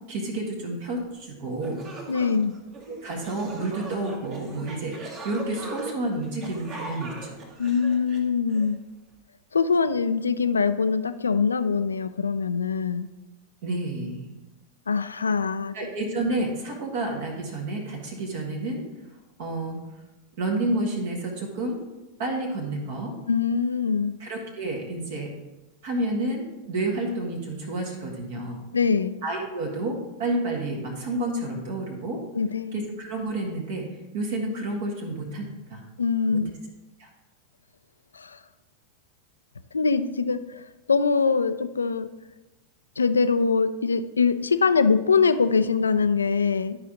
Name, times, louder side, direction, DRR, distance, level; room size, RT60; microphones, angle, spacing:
voice 1, 0.1-1.8 2.9-5.0 5.2-7.4 13.6-14.3 15.7-18.8 19.4-19.8 20.4-21.8 22.2-23.1 24.2-25.3 25.8-28.6 29.2-32.2 32.7-33.9 34.1-35.8 36.3-36.4 37.0-37.1, right 2 dB, 55° right, 0 dB, 1.7 m, -30 dB
sound 1, 1.2-1.3 1.6-8.7, right 3 dB, 35° right, 1.5 m, -40 dB
voice 2, 2.1-2.6 7.6-8.8 9.5-13.1 14.9-15.7 23.3-24.1 28.7-29.2 32.3-32.8 36.0-36.5 38.2-38.4 39.7-40.6 40.9-42.1 43.0-46.8, left 5 dB, 75° left, 12 dB, 0.4 m, -23 dB
12.0 x 5.0 x 3.8 m, 1.0 s
figure-of-eight pair, 90°, 0 cm